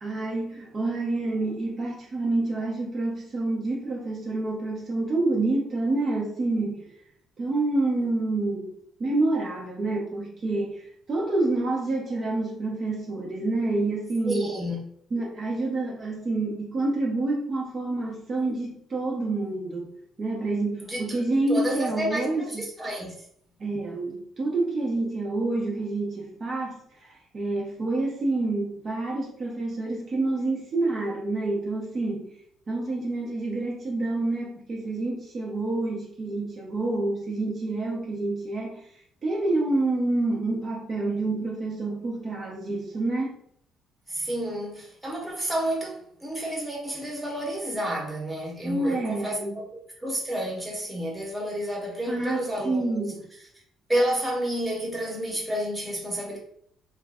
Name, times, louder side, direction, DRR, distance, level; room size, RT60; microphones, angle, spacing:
voice 1, 0.0-6.9 7.4-8.7 9.0-14.6 15.1-19.9 20.2-22.6 23.6-32.4 32.7-38.9 39.2-43.4 48.6-49.6 52.1-53.2, right 2 dB, 30° right, 0.7 m, -28 dB
voice 2, 14.2-14.8 20.8-21.2 21.5-23.1 44.1-49.4 50.0-53.0 53.9-56.4, right 1 dB, 10° right, 1.0 m, -30 dB
3.1 x 2.4 x 3.4 m
cardioid pair, 135°, 0 cm